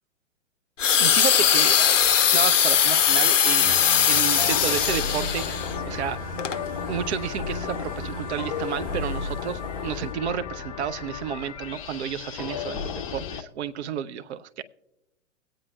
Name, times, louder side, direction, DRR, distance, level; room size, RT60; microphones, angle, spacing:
sound 1, 0.8-5.7 6.4-6.6, left 8 dB, 80° left, 0.5 m, -20 dB
voice 1, 1.0-2.0 2.3-3.8 4.1-6.2 6.9-14.6, right 8 dB, 60° right, 12 dB, 0.5 m, -31 dB
sound 2, 1.4-13.4, left 7 dB, 30° left, 0.5 m, -34 dB
sound 3, 3.6-10.1, right 4 dB, 40° right, 1.4 m, -40 dB
22.5 x 8.8 x 2.3 m, 0.90 s
figure-of-eight pair, 110°, 38 cm